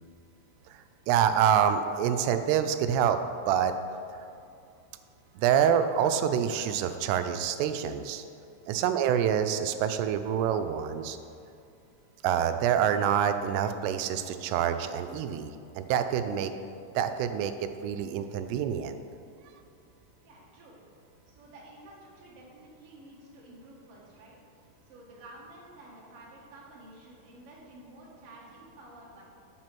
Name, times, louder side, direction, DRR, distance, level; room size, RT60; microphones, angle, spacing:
voice 1, 0.7-3.2 3.5-3.7 5.4-8.2 8.7-11.2 12.2-16.5 17.0-19.0, right 9 dB, 85° right, 9 dB, 2.6 m, -26 dB
voice 2, 20.2-20.8 21.3-29.2, right 1 dB, 45° right, -5 dB, 2.2 m, -51 dB
7.6 x 7.0 x 5.9 m, 2.5 s
omnidirectional pair, 4.8 m